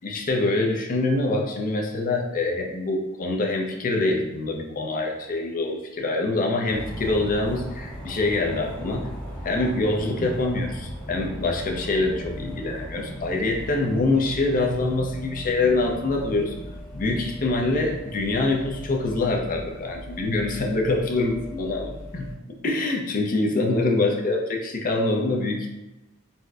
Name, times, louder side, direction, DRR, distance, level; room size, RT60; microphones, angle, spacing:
voice 1, 0.0-9.1 9.4-16.5 16.9-22.3 22.6-25.7, left 2 dB, 40° left, 1 dB, 0.5 m, -25 dB
sound 1, 6.7-22.3, equal, 5° left, 0.7 m, -38 dB
4.0 x 2.1 x 2.3 m, 0.98 s
head